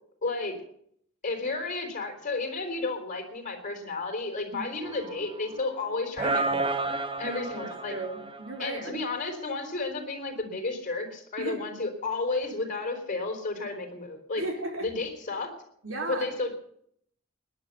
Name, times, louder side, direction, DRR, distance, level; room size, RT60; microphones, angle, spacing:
voice 1, 0.2-0.5 1.2-6.8 7.2-7.9 8.6-14.4 14.8-15.5 16.1-16.5, left 3 dB, 40° left, 3 dB, 4.1 m, -32 dB
sound 1, 4.8-5.8 6.2-8.9, right 3 dB, 25° right, 0.9 m, -31 dB
voice 2, 7.2-8.9 11.4-11.6 14.4-14.9 15.8-16.3, right 1 dB, 85° right, 2 dB, 4.0 m, -35 dB
19.0 x 10.5 x 6.8 m, 0.67 s
head